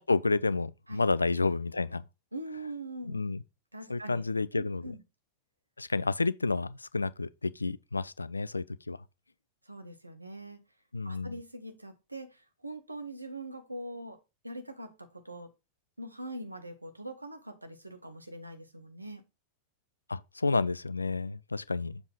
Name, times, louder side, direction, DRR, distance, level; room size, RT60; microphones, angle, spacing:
voice 1, 0.0-2.0 3.1-3.4 3.9-4.9 5.8-9.0 10.9-11.3 20.1-22.0, left 3 dB, 80° left, 0.3 m, -30 dB
voice 2, 2.3-3.3 3.7-4.2 4.5-5.0 9.6-10.6 11.0-14.2 14.4-15.5 16.0-19.2, right 1 dB, 85° right, 1.0 m, -42 dB
7.1 x 3.8 x 4.4 m
figure-of-eight pair, 90°, 0 cm